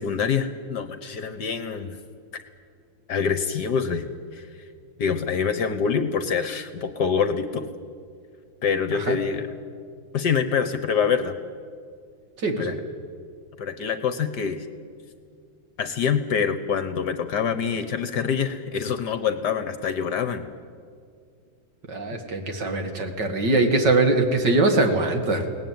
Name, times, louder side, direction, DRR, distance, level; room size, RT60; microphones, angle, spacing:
voice 1, 0.0-2.0 3.1-4.1 4.3-4.5 5.0-7.7 8.6-9.5 10.1-11.4 12.6-12.8 13.6-14.7 15.8-20.5, left 6 dB, 60° left, 10 dB, 1.4 m, -25 dB
voice 2, 12.4-12.7 21.9-25.4, right 2 dB, 55° right, 4 dB, 2.8 m, -22 dB
23.0 x 18.5 x 9.4 m, 2.2 s
omnidirectional pair, 2.3 m